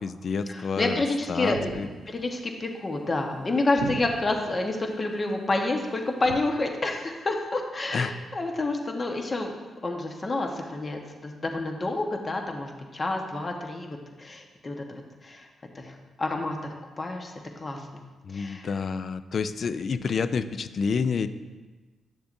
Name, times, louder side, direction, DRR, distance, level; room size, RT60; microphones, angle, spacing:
voice 1, 0.0-1.0 1.3-1.9 7.9-8.1 18.2-21.3, left 5 dB, 60° left, 13 dB, 0.4 m, -29 dB
voice 2, 0.5-1.7 2.1-9.5 9.8-15.5 15.7-18.0 18.3-18.7, left 2 dB, 40° left, 3 dB, 1.2 m, -29 dB
sound 1, 1.5-2.3 3.8-4.6 6.2-6.4, right 5 dB, 80° right, 0.4 m, -37 dB
10.0 x 6.8 x 2.7 m, 1.3 s
supercardioid pair, 50°, 0 cm